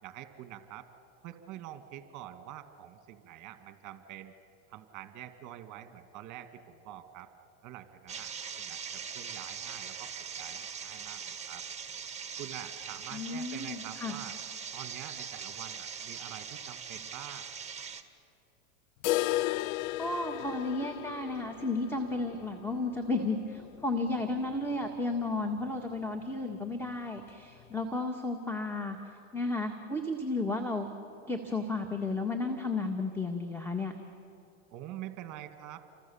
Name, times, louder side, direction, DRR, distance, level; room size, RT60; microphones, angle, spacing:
voice 1, 0.0-0.9 1.2-4.3 4.7-7.3 7.6-8.3 8.6-11.6 12.4-14.3 14.7-17.5 34.7-35.8, right 12 dB, 45° right, 8 dB, 2.0 m, -46 dB
sound 1, 8.1-18.0, right 7 dB, 15° right, 1.7 m, -41 dB
voice 2, 13.1-14.2 20.0-29.0 29.3-30.9 31.3-33.9, left 2 dB, 5° left, 4 dB, 1.9 m, -33 dB
sound 2, 19.0-24.8 25.1-25.2 25.6-25.7 26.2-26.3 27.2-27.3, left 16 dB, 55° left, 0.6 m, -35 dB
30.0 x 25.0 x 7.2 m, 2.6 s
hypercardioid pair, 115°, 42 cm